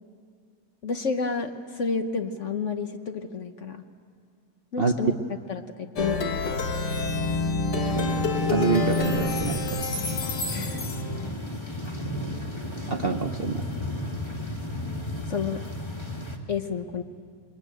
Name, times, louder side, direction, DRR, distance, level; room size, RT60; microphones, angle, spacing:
voice 1, 0.8-3.8 4.7-5.1 5.5-6.6 10.5-10.8 15.3-15.6 16.5-17.0, left 5 dB, 50° left, 7 dB, 1.2 m, -30 dB
Plucked string instrument, 6.0-11.3, left 3 dB, 70° left, 2.2 m, -27 dB
voice 2, 7.8-8.1 8.5-9.6 12.9-13.6, right 4 dB, 40° right, 3 dB, 0.9 m, -26 dB
sound 1, 7.9-16.4, left 1 dB, 15° left, 1.8 m, -34 dB
27.0 x 21.5 x 9.0 m, 2.3 s
omnidirectional pair, 1.9 m